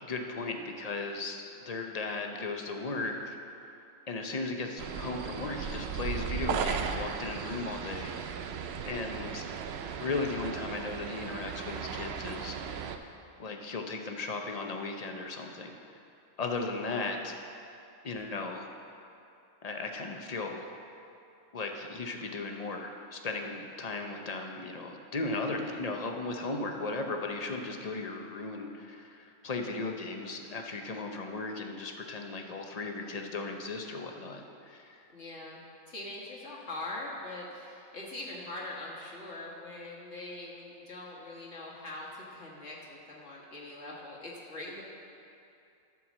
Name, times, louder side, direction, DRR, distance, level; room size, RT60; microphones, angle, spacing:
voice 1, 0.0-3.4 4.1-8.1 8.8-9.4 10.0-13.1 13.4-15.7 16.4-17.4 18.0-18.7 19.6-20.7 21.5-35.1, left 3 dB, 40° left, 3 dB, 0.6 m, -36 dB
sound 1, 4.8-13.0, right 7 dB, 65° right, 0.7 m, -36 dB
voice 2, 35.1-35.6 35.9-44.8, left 2 dB, 55° left, -5 dB, 1.7 m, -42 dB
12.0 x 4.7 x 7.2 m, 2.7 s
omnidirectional pair, 1.4 m